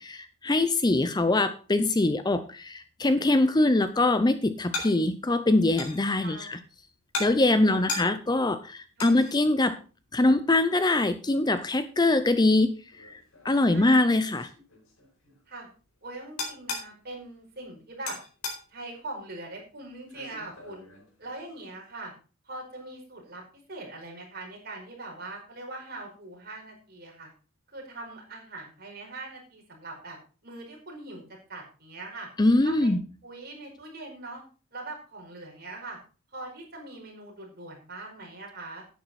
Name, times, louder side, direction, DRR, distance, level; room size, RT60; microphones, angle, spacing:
voice 1, 0.0-6.6 7.2-9.8 10.1-13.2 13.4-14.5 32.4-33.0, left 2 dB, 20° left, 12 dB, 0.6 m, -23 dB
sound 1, 3.6-21.8, left 3 dB, 80° left, 4.3 m, -42 dB
voice 2, 6.2-6.6 7.6-8.0 9.0-9.2 13.6-14.1 15.5-15.7 16.0-18.2 18.7-20.8 21.2-22.1 22.4-27.3 27.7-30.2 30.4-31.2 31.5-32.3 32.6-32.9 33.2-34.4 34.7-36.0 36.3-38.8, right 2 dB, 50° right, 0 dB, 5.0 m, -42 dB
11.0 x 9.4 x 4.2 m, 0.35 s
head